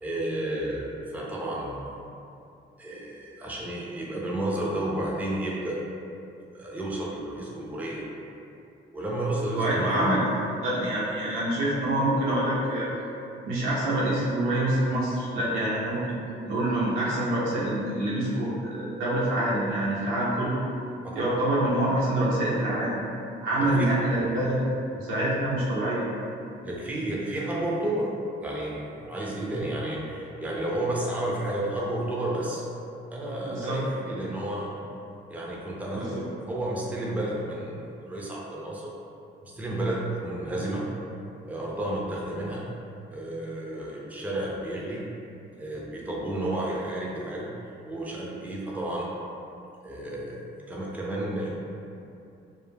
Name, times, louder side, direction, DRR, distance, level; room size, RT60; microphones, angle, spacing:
voice 1, 0.0-2.0 2.8-5.8 6.5-8.0 8.9-10.1 21.0-21.4 23.6-23.9 25.0-25.2 26.6-28.1 28.4-32.6 33.1-34.7 35.3-38.9 39.4-40.9 41.5-42.7 43.1-45.1 45.6-47.5 47.8-49.1 49.8-51.5, right 1 dB, 5° right, -4 dB, 0.5 m, -31 dB
voice 2, 9.5-10.2 10.6-12.9 13.4-16.2 16.4-20.6 21.1-23.0 23.4-26.0 33.5-33.8 35.9-36.2, right 1 dB, 85° right, -8 dB, 0.8 m, -26 dB
2.3 x 2.1 x 3.3 m, 2.6 s
cardioid pair, 90°, 20 cm